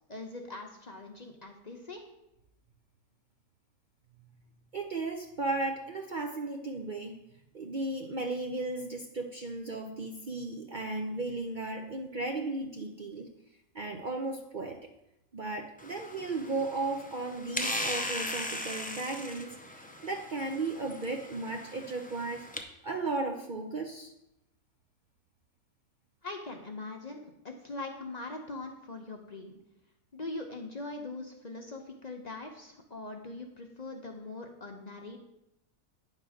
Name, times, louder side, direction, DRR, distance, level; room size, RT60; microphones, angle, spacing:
voice 1, 0.1-2.0 26.2-29.6 30.1-35.2, left 2 dB, 35° left, 2 dB, 0.8 m, -42 dB
voice 2, 4.7-7.2 7.5-13.3 13.7-14.8 15.3-22.4 22.8-24.1, right 2 dB, 45° right, 3 dB, 0.6 m, -35 dB
sound 1, 15.8-22.6, left 1 dB, 10° left, 0.4 m, -38 dB
9.7 x 3.8 x 6.3 m, 0.85 s
omnidirectional pair, 1.5 m